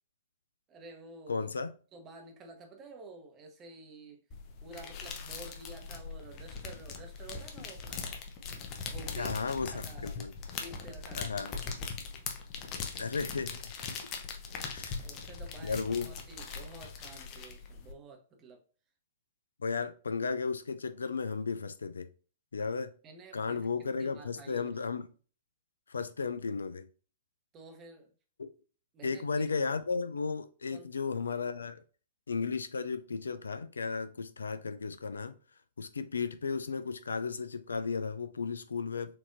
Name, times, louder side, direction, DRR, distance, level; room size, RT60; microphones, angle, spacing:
voice 1, 0.7-1.5 1.9-4.2 4.6-8.1 8.9-10.2 10.6-11.5 14.8-18.6 23.0-23.7 24.0-24.7 27.5-28.1 28.9-29.2 30.7-30.9, right 3 dB, 25° right, 0.9 m, -50 dB
voice 2, 1.3-1.7 9.1-9.7 10.0-10.3 11.1-11.6 13.0-13.7 14.6-15.0 15.6-16.1 19.6-22.1 22.5-22.9 23.3-25.1 25.9-26.9 28.4-28.5 29.0-31.8 32.3-35.3 35.8-39.2, left 5 dB, 75° left, 0.4 m, -34 dB
sound 1, 4.3-17.9, left 5 dB, 35° left, 0.7 m, -41 dB
4.4 x 2.8 x 2.6 m
figure-of-eight pair, 110°, 0 cm